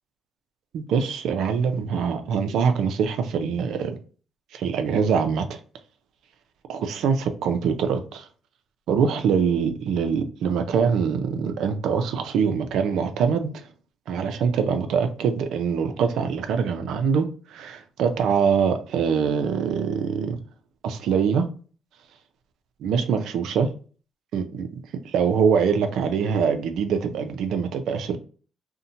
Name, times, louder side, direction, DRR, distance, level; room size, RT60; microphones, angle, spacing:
voice 1, 0.7-4.0 4.5-5.6 6.7-8.3 8.9-13.7 14.1-20.4 20.8-21.5 22.8-23.7 24.3-28.2, right 6 dB, 80° right, 0.4 m, -24 dB
2.7 x 2.1 x 2.6 m
cardioid pair, 90°, 0 cm